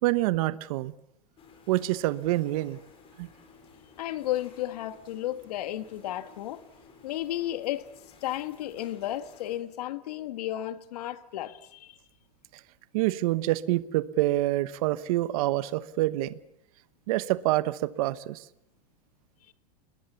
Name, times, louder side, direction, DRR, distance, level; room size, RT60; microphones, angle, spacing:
voice 1, 0.0-0.9 1.7-2.8 3.2-3.3 12.9-16.4 17.1-18.4, right 17 dB, 60° right, 1.2 m, -26 dB
sound 1, 1.4-9.6, left 4 dB, 25° left, 7.4 m, -55 dB
voice 2, 4.0-6.6 7.0-7.9 8.2-12.0, left 13 dB, 70° left, 2.0 m, -33 dB
30.0 x 21.0 x 7.1 m
supercardioid pair, 135°, 20 cm